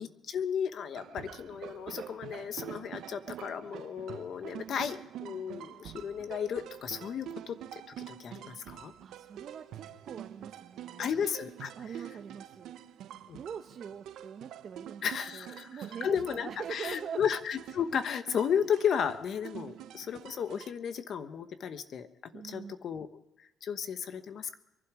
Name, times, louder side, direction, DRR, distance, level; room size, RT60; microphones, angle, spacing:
voice 1, 0.0-7.6 8.0-8.9 11.0-11.7 13.3-13.4 15.0-23.1 23.4-24.6, left 7 dB, 60° left, 11 dB, 1.1 m, -34 dB
sound 1, 0.9-20.7, right 11 dB, 85° right, 0.7 m, -46 dB
voice 2, 9.0-11.2 11.8-12.8 13.3-17.2 19.6-19.7 22.3-22.8, right 7 dB, 55° right, 5 dB, 0.9 m, -44 dB
23.5 x 12.0 x 5.0 m, 0.87 s
cardioid pair, 115°, 0 cm